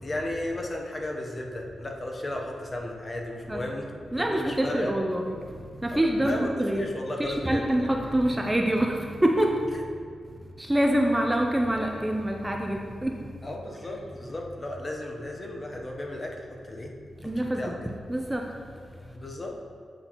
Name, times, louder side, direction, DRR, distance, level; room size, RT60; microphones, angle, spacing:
voice 1, 0.0-3.8 4.2-4.9 5.9-7.9 13.4-16.9 17.4-17.8 19.1-19.5, left 1 dB, 30° left, 1 dB, 0.8 m, -34 dB
voice 2, 4.1-5.4 5.8-6.8 7.2-9.7 10.6-13.2 17.2-18.5, right 1 dB, 10° right, 2 dB, 0.4 m, -26 dB
8.7 x 4.2 x 2.9 m, 2.1 s
cardioid pair, 100°, 0 cm